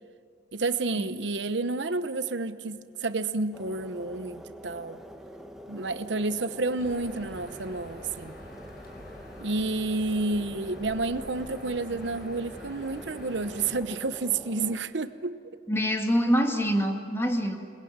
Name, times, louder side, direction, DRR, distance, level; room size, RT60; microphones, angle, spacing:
voice 1, 0.5-5.0 5.7-8.4 9.4-15.4, right 3 dB, 75° right, 11 dB, 0.9 m, -30 dB
sound 1, 3.5-14.8, equal, 5° right, 1.4 m, -45 dB
sound 2, 6.8-13.7, left 1 dB, 60° left, 5.5 m, -47 dB
voice 2, 15.7-17.6, equal, 15° left, 3 dB, 2.2 m, -25 dB
28.0 x 21.5 x 8.8 m, 2.2 s
head